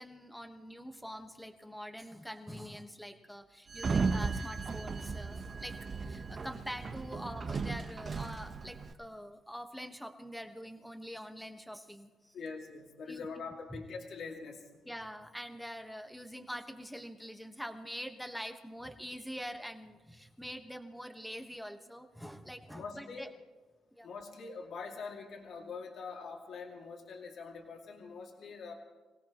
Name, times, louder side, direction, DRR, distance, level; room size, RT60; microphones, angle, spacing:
voice 1, 0.0-12.3 13.1-13.3 13.7-13.8 14.9-23.3 24.0-24.1, equal, ahead, 6 dB, 1.3 m, -45 dB
Sliding door, 3.7-8.9, right 4 dB, 40° right, 1.1 m, -36 dB
voice 2, 12.3-14.8 22.7-23.3 24.0-28.7, left 4 dB, 65° left, 1 dB, 2.4 m, -44 dB
26.5 x 17.5 x 3.1 m, 1.3 s
cardioid pair, 100°, 0 cm